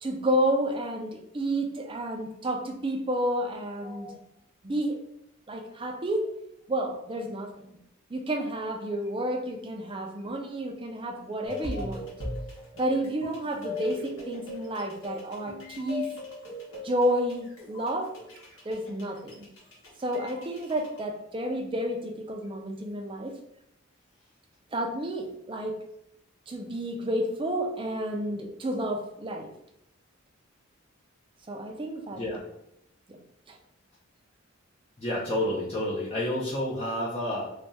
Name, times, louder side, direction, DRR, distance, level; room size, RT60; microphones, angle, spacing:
voice 1, 0.0-4.2 4.6-5.0 5.5-6.3 6.7-7.8 8.1-12.0 12.8-16.1 16.8-18.1 18.6-19.5 20.0-23.3 24.7-25.8 26.5-29.5 31.5-32.2 33.1-33.2 33.5-33.6, right 1 dB, 25° right, 3 dB, 0.5 m, -30 dB
voice 2, 3.8-4.1 11.7-11.8 32.2-32.4 35.0-37.5, left 1 dB, 30° left, -7 dB, 0.7 m, -30 dB
sound 1, 11.4-21.0, left 2 dB, 80° left, 1.3 m, -39 dB
3.4 x 2.3 x 4.0 m, 0.82 s
head